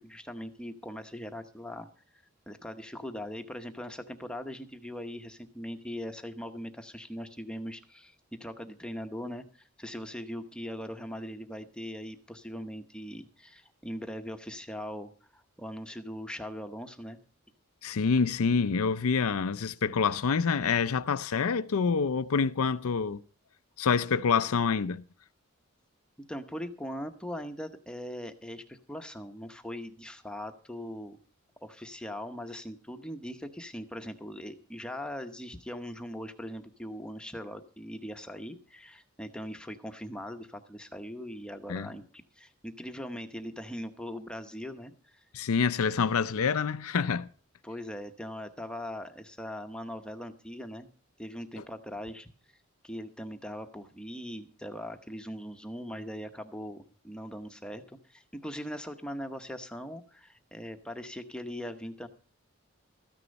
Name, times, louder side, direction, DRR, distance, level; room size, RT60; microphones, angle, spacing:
voice 1, 0.0-1.9 2.5-9.4 9.8-17.2 26.2-31.2 31.6-45.2 47.6-50.9 51.2-52.3 52.8-62.1, equal, 5° left, 0.8 m, -40 dB
voice 2, 17.8-23.2 23.8-25.0 41.7-41.9 45.3-47.3, left 5 dB, 80° left, 0.5 m, -27 dB
14.0 x 9.9 x 5.2 m
head